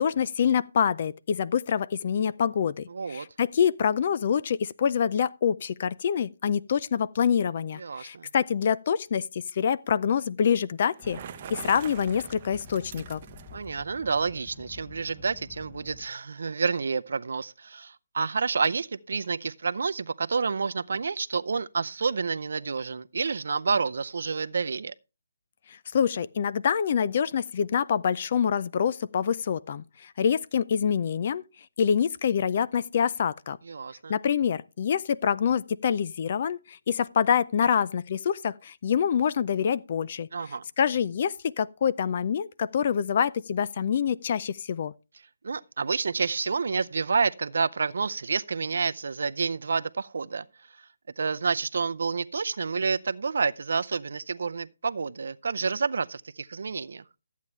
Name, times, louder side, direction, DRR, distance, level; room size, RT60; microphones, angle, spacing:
voice 1, 0.0-11.2 11.5-13.2 25.9-31.4 31.8-33.6 34.1-40.3 40.8-44.9, left 7 dB, 40° left, 0.4 m, -26 dB
voice 2, 2.9-3.3 7.8-8.3 13.5-24.9 33.7-34.1 40.3-40.6 45.4-50.4 51.2-57.0, right 5 dB, 65° right, 0.6 m, -29 dB
Bicycle, 10.8-13.7, right 9 dB, 30° right, 0.7 m, -43 dB
sound 1, 11.0-16.1, left 6 dB, 10° left, 0.9 m, -49 dB
13.5 x 8.3 x 3.2 m
hypercardioid pair, 160°, 0 cm